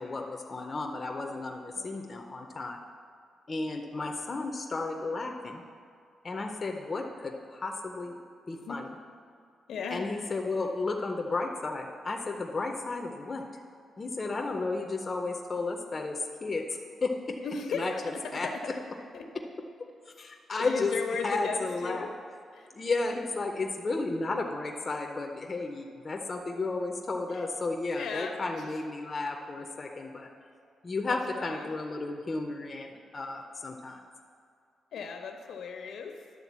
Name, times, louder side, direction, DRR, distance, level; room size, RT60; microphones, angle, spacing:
voice 1, 0.0-2.8 3.5-5.6 6.2-8.2 8.5-8.9 9.9-13.4 14.0-16.7 17.0-17.4 17.7-17.9 18.3-18.5 20.1-20.9 21.2-22.1 22.7-30.3 30.8-34.0, left 3 dB, 25° left, 2 dB, 0.5 m, -33 dB
voice 2, 1.8-2.3 8.6-8.8 9.7-10.0 17.4-18.6 19.1-19.3 20.6-22.1 22.5-22.7 27.3-27.4 28.0-28.8 31.1-31.7 34.9-36.2, left 5 dB, 85° left, 3 dB, 1.0 m, -37 dB
11.0 x 3.7 x 7.3 m, 2.3 s
wide cardioid pair, 165°, 0 cm